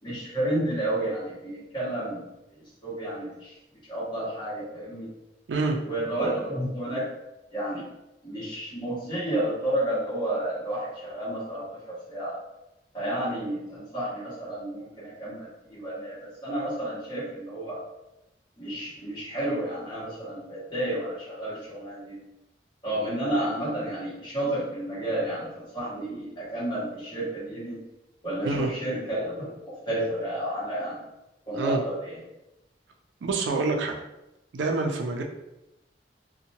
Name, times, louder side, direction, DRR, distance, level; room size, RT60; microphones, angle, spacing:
voice 1, 0.0-2.2 2.5-3.6 3.9-5.1 5.8-7.1 7.5-7.9 8.2-12.4 12.9-17.8 18.6-22.2 22.8-27.8 28.2-31.0 31.5-32.2, right 1 dB, 25° left, -9 dB, 1.3 m, -31 dB
voice 2, 33.2-34.0 34.5-35.2, right 3 dB, 80° right, 4 dB, 0.4 m, -26 dB
2.7 x 2.1 x 2.8 m, 0.91 s
head